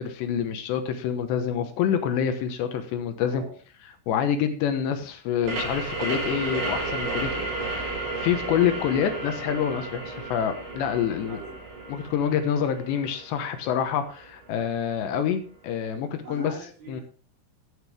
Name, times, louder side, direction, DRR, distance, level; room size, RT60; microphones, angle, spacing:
voice 1, 0.0-3.4 4.1-11.4 11.9-16.5 16.9-17.0, left 8 dB, 75° left, 8 dB, 2.9 m, -27 dB
sound 1, 5.4-14.8, right 2 dB, 50° right, 7.4 m, -33 dB
voice 2, 11.2-11.6 16.2-17.0, right 2 dB, 35° right, -8 dB, 4.8 m, -42 dB
14.5 x 8.1 x 3.5 m, 0.39 s
omnidirectional pair, 5.7 m